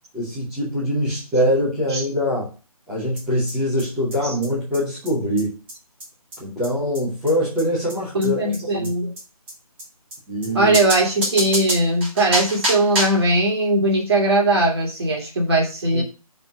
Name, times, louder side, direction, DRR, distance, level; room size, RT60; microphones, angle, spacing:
voice 1, 0.1-2.5 2.9-5.5 6.4-8.4 8.8-8.9 10.3-10.8 15.9-16.0, equal, ahead, -9 dB, 0.5 m, -23 dB
sound 1, 3.2-3.3 3.5-3.6 3.8-3.9 4.1-4.2 4.4-4.5 4.7-4.8 5.0-5.1 5.4-5.5 5.7-5.8 6.0-6.1 6.3-6.4 6.6-6.7 6.9-7.0 7.3-7.4 7.6-7.7 7.9-8.0 8.2-8.3 8.5-8.6 8.8-8.9 9.2-9.3 9.5-9.6 9.8-9.9 10.1-10.2 10.4-10.5 10.7-13.3, right 1 dB, 20° right, 2.1 m, -26 dB
voice 2, 8.1-9.1 10.5-16.0, right 2 dB, 45° right, 0 dB, 2.5 m, -19 dB
5.4 x 4.9 x 6.4 m, 0.33 s
figure-of-eight pair, 165°, 19 cm